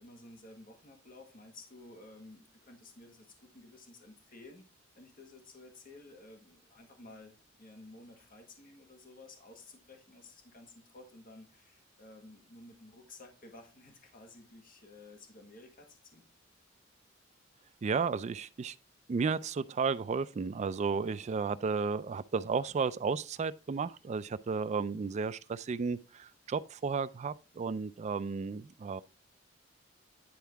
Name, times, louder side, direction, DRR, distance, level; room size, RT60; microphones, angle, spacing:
voice 1, 0.0-4.6 5.0-16.2, left 2 dB, 45° left, 1.6 m, -54 dB
voice 2, 17.8-18.7 19.1-29.0, right 5 dB, 35° right, 0.3 m, -33 dB
10.0 x 4.6 x 3.4 m
head